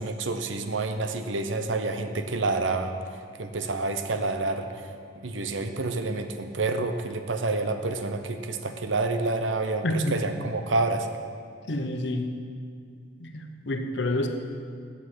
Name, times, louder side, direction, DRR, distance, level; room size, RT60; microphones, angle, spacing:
voice 1, 0.0-2.9 3.4-4.8 5.2-11.1, right 3 dB, 80° right, 7 dB, 0.8 m, -28 dB
voice 2, 9.8-10.2 11.7-12.3 13.2-14.3, left 1 dB, 65° left, 5 dB, 1.0 m, -28 dB
8.9 x 7.3 x 7.8 m, 2.3 s
head